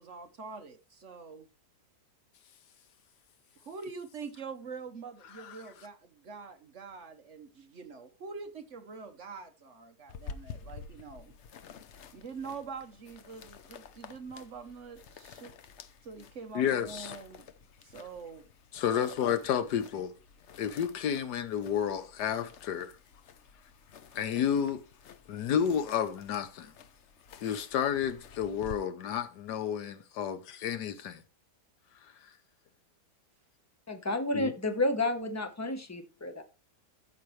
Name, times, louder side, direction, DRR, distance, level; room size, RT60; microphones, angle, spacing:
voice 1, 0.0-1.5 3.6-11.3 12.1-15.5 16.0-17.5 17.8-18.5 18.9-19.1, right 5 dB, 50° right, 1.2 m, -45 dB
sound 1, 10.1-28.8, left 6 dB, 55° left, 0.8 m, -50 dB
voice 2, 16.5-17.1 18.7-20.1 20.6-22.9 24.1-24.8 25.3-26.7 27.4-31.2 34.3-34.5, left 8 dB, 80° left, 1.5 m, -31 dB
voice 3, 33.9-36.4, left 2 dB, 15° left, 0.8 m, -31 dB
13.5 x 6.3 x 3.2 m
omnidirectional pair, 1.8 m